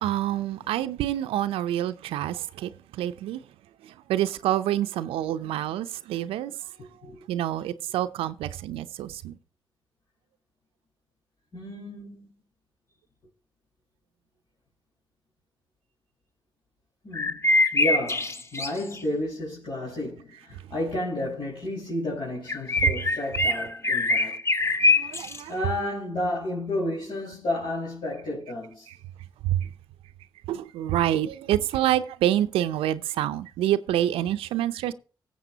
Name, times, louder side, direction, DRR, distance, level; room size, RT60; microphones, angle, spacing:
voice 1, 0.0-2.7 3.0-3.4 3.8-6.5 7.3-9.4 25.0-25.5 29.4-29.6 30.5-34.9, right 12 dB, 85° right, 0.5 m, -27 dB
voice 2, 6.8-7.2 11.5-12.3 17.0-24.3 25.5-28.9, left 1 dB, 65° left, 5.0 m, -32 dB
sound 1, 17.1-19.0 22.5-25.4, left 2 dB, 30° left, 1.2 m, -23 dB
15.5 x 7.4 x 2.8 m
supercardioid pair, 45°, 9 cm